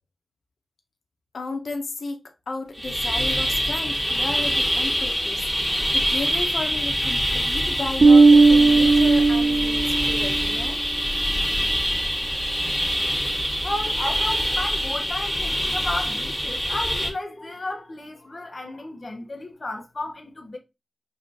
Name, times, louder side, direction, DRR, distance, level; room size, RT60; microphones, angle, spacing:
voice 1, 1.3-5.4 5.9-10.8, left 3 dB, 80° left, 0.8 m, -33 dB
sound 1, 2.8-17.1, equal, 5° right, 2.0 m, -25 dB
Bass guitar, 8.0-10.4, right 3 dB, 75° right, 0.3 m, -15 dB
voice 2, 13.1-20.6, left 2 dB, 45° left, 0.9 m, -33 dB
4.9 x 3.2 x 2.6 m
wide cardioid pair, 85°, 0 cm